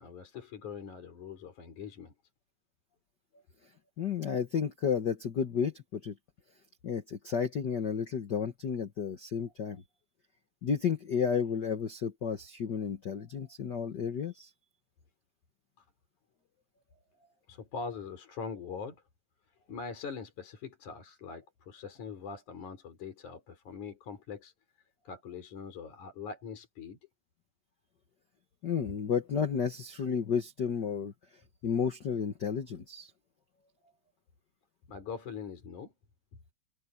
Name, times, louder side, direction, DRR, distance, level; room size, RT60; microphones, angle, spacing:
voice 1, 0.0-2.1 3.3-3.4 4.0-4.1 13.2-13.5 15.8-15.9 16.9-19.0 19.7-24.5 25.0-27.0 34.9-35.9, left 5 dB, 60° left, 5.5 m, -43 dB
voice 2, 4.0-6.1 6.8-9.8 10.6-14.5 28.6-31.1 31.6-33.1, left 7 dB, 80° left, 0.9 m, -32 dB
omnidirectional pair, 3.9 m